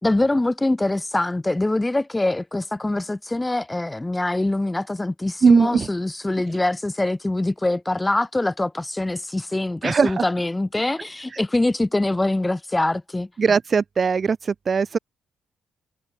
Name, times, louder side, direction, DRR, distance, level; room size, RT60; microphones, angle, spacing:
voice 1, 0.0-13.3, left 2 dB, 15° left, 2.1 m, -24 dB
voice 2, 5.4-5.9 9.8-10.2 13.4-15.0, right 5 dB, 40° right, 4.3 m, -19 dB
cardioid pair, 90°, 0 cm